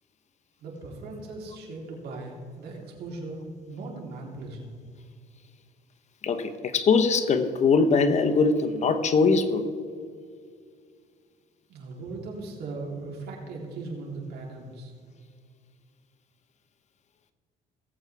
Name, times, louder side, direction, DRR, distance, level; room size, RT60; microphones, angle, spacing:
voice 1, 0.6-4.7 11.7-14.9, right 3 dB, 70° right, -1 dB, 3.2 m, -38 dB
voice 2, 6.2-9.6, left 4 dB, 45° left, 9 dB, 0.9 m, -22 dB
18.5 x 8.1 x 3.4 m, 2.1 s
cardioid pair, 110°, 17 cm